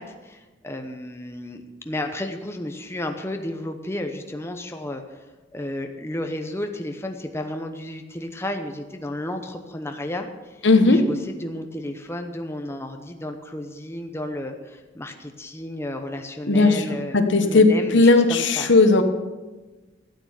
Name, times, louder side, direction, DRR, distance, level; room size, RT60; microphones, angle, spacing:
voice 1, 0.0-5.3 5.5-18.7, left 1 dB, 15° left, 5 dB, 0.8 m, -33 dB
voice 2, 10.6-11.0 16.5-16.8 17.1-17.7 17.9-19.0, left 3 dB, 65° left, 7 dB, 1.2 m, -16 dB
13.0 x 8.8 x 7.1 m, 1.2 s
head